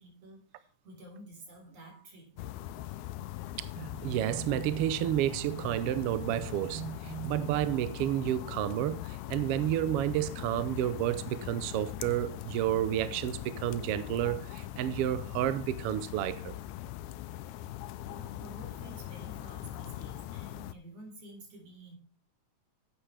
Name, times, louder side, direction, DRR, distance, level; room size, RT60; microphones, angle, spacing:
voice 1, 0.0-2.6 17.4-17.6 18.0-22.0, right 1 dB, 55° right, 5.1 m, -51 dB
sound 1, 2.4-20.7, left 13 dB, 85° left, 2.0 m, -41 dB
voice 2, 3.6-16.5, right 12 dB, 80° right, 1.3 m, -31 dB
12.0 x 8.9 x 3.4 m
omnidirectional pair, 3.4 m